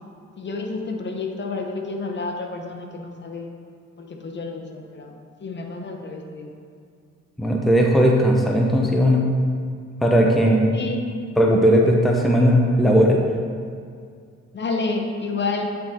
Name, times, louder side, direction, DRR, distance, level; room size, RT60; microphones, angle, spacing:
voice 1, 0.4-3.5 4.0-6.6 10.7-11.1 14.5-15.7, left 3 dB, 35° left, 3 dB, 0.8 m, -30 dB
voice 2, 7.4-9.3 10.0-10.7 11.4-13.2, equal, ahead, 0 dB, 0.6 m, -17 dB
8.6 x 3.8 x 4.3 m, 2.3 s
cardioid pair, 90°, 30 cm